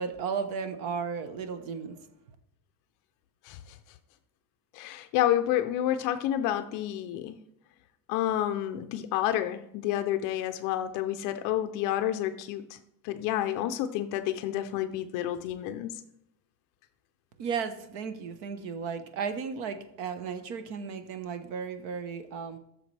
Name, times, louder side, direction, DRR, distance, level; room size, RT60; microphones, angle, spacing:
voice 1, 0.0-2.1 17.4-22.6, right 6 dB, 60° right, 9 dB, 1.1 m, -34 dB
voice 2, 3.4-3.8 4.7-7.3 8.1-12.8 13.0-15.9, left 12 dB, 45° left, 8 dB, 0.4 m, -29 dB
14.5 x 6.8 x 3.3 m, 0.78 s
cardioid pair, 170°, 49 cm